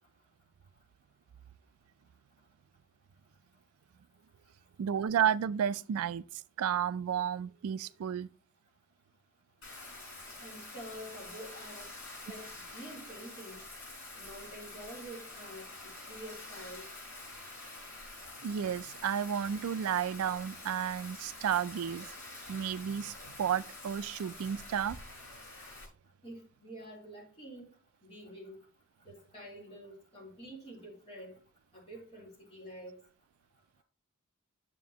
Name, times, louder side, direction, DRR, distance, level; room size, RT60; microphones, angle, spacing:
voice 1, 4.8-8.3 18.4-22.1 22.5-25.0, right 8 dB, 85° right, 0.3 m, -32 dB
Bathtub (filling or washing), 9.6-25.9, left 2 dB, 80° left, 4.9 m, -47 dB
voice 2, 10.4-11.9 12.2-13.7 14.2-16.9 26.2-27.7 28.0-28.6 29.0-31.4 31.7-33.0, equal, 25° left, 3.1 m, -48 dB
9.2 x 7.0 x 2.8 m
head